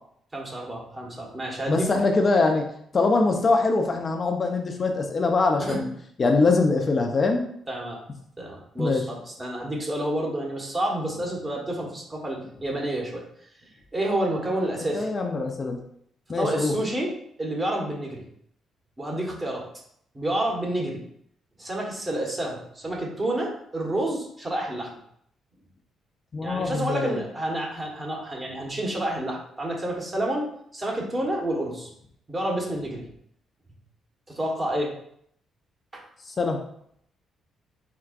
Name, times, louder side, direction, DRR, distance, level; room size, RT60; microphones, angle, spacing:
voice 1, 0.3-1.9 5.6-5.8 7.7-8.0 8.4-13.2 13.9-15.1 16.3-17.1 17.4-18.2 19.0-19.6 20.1-21.0 21.6-25.0 26.4-30.4 30.7-31.9 32.3-33.1 34.3-34.9 35.9-36.0, right 1 dB, 25° right, -1 dB, 1.4 m, -29 dB
voice 2, 1.7-2.6 2.9-5.9 6.2-7.4 8.8-9.0 14.9-15.8 16.3-16.7 26.3-27.2 36.3-36.6, left 3 dB, 40° left, 3 dB, 0.5 m, -23 dB
4.6 x 3.7 x 2.5 m, 0.68 s
cardioid pair, 90°, 0 cm